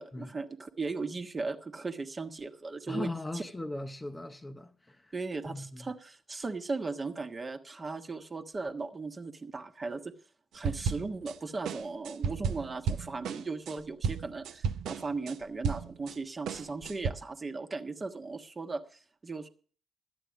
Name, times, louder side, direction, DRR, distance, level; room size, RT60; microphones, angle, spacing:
voice 1, 0.0-3.4 5.1-10.1 10.5-19.5, right 3 dB, 30° right, 1.2 m, -37 dB
voice 2, 2.9-5.0 5.5-5.9, left 2 dB, 20° left, 0.8 m, -38 dB
sound 1, 10.6-11.4 11.6-16.1 16.5-17.1, right 6 dB, 65° right, 0.6 m, -33 dB
12.5 x 9.0 x 6.1 m
figure-of-eight pair, 40°, 0 cm